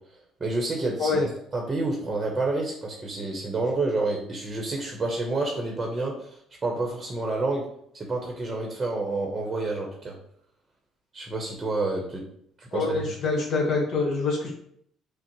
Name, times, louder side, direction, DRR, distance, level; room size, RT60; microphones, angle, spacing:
voice 1, 0.4-7.6 7.9-10.1 11.1-12.2 12.6-13.0, right 2 dB, 30° right, 1 dB, 0.8 m, -29 dB
voice 2, 12.7-14.5, left 3 dB, 60° left, 0 dB, 1.1 m, -25 dB
5.6 x 2.0 x 3.0 m, 0.68 s
cardioid pair, 90°, 0 cm